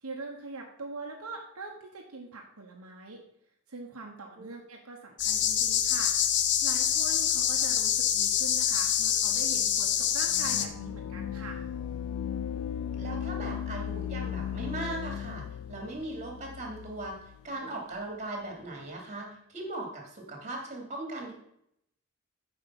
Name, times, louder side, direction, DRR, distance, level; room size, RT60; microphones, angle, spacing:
voice 1, 0.0-3.2 3.7-6.1 6.6-11.6, right 3 dB, 75° right, 0 dB, 1.1 m, -42 dB
sound 1, 5.2-10.6, left 9 dB, 55° left, 0.7 m, -26 dB
sound 2, 10.3-17.5, left 9 dB, 75° left, 0.3 m, -36 dB
voice 2, 13.0-17.2 17.4-21.3, right 2 dB, 35° right, 1 dB, 2.8 m, -38 dB
8.9 x 5.2 x 5.9 m, 0.75 s
head